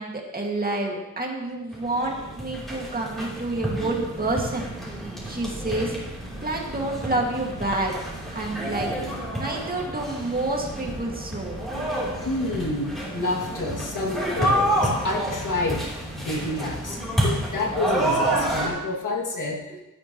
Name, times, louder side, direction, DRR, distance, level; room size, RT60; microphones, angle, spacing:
voice 1, 0.0-4.7 5.2-6.0 6.4-7.9 8.3-8.9 9.3-11.6, right 2 dB, 30° right, -1 dB, 2.1 m, -28 dB
sound 1, 1.7-18.7, right 1 dB, ahead, 3.4 m, -29 dB
voice 2, 12.2-19.8, left 2 dB, 85° left, -2 dB, 2.4 m, -29 dB
16.5 x 11.0 x 3.1 m, 1.0 s
wide cardioid pair, 155°, 30 cm